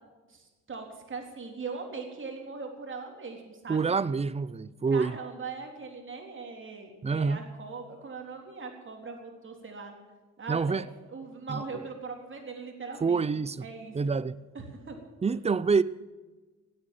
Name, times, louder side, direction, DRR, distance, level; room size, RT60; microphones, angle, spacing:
voice 1, 0.3-4.0 4.9-9.9 10.4-14.2 14.5-15.0, right 4 dB, 40° right, 3.8 m, -40 dB
voice 2, 3.7-5.2 7.0-7.4 10.5-10.8 11.5-11.6 13.0-13.6 13.9-14.4 15.2-15.8, right 5 dB, 20° right, 0.6 m, -27 dB
17.0 x 8.9 x 9.2 m
cardioid pair, 90°, 30 cm